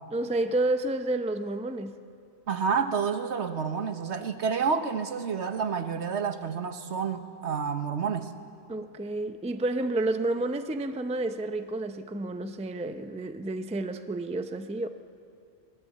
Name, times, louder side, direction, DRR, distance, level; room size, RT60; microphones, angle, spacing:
voice 1, 0.1-2.0 8.7-14.9, right 2 dB, 5° right, 8 dB, 0.5 m, -30 dB
voice 2, 2.5-8.3, right 6 dB, 65° right, 9 dB, 1.4 m, -29 dB
25.0 x 17.5 x 8.4 m, 2.4 s
omnidirectional pair, 1.3 m